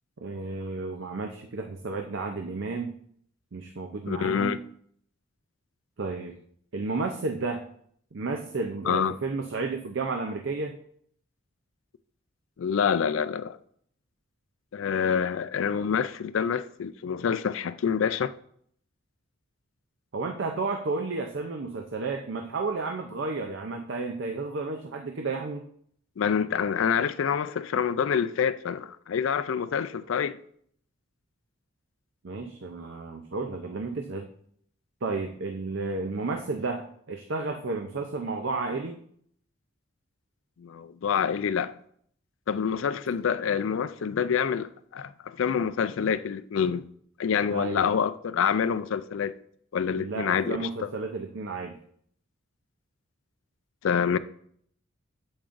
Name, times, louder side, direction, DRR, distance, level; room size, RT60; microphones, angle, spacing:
voice 1, 0.2-3.0 3.5-4.6 6.0-6.4 6.7-7.7 8.1-10.8 20.1-25.7 32.2-34.3 35.0-39.0 47.5-47.9 50.0-51.8, right 3 dB, 60° right, 0.5 m, -32 dB
voice 2, 4.1-4.6 8.9-9.1 12.6-13.6 14.7-18.3 26.2-30.4 40.6-41.7 42.5-46.8 47.2-49.3 49.7-50.9 53.8-54.2, left 7 dB, 70° left, 0.4 m, -27 dB
8.7 x 7.1 x 2.5 m
head